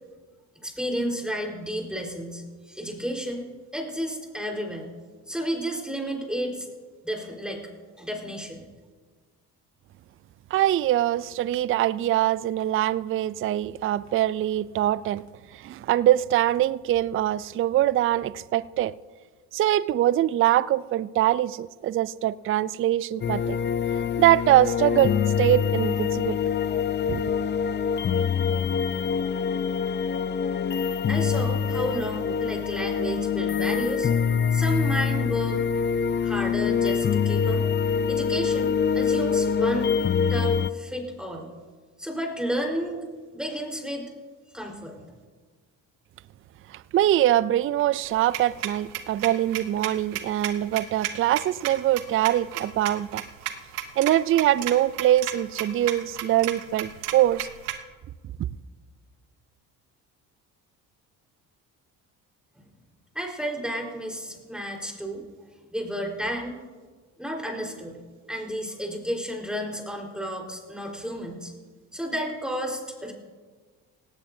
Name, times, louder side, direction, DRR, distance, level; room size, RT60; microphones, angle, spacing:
voice 1, 0.6-3.5 3.7-4.9 5.3-6.7 7.0-7.7 8.0-8.6 31.1-34.1 34.5-35.6 36.2-37.6 38.1-38.7 38.9-40.0 40.3-41.5 42.0-44.1 44.5-45.0 63.1-65.2 65.7-66.6 67.2-68.0 68.3-71.5 71.9-73.1, equal, ahead, 4.2 m, -31 dB
voice 2, 10.5-15.2 15.5-18.9 19.5-23.6 24.2-26.4 27.1-27.2 46.7-53.2 54.0-57.5, right 13 dB, 30° right, 0.4 m, -23 dB
sound 1, 23.2-40.7, left 7 dB, 25° left, 0.5 m, -25 dB
sound 2, 48.1-57.8, right 13 dB, 90° right, 0.9 m, -33 dB
18.0 x 17.0 x 2.7 m
hypercardioid pair, 55°, 45 cm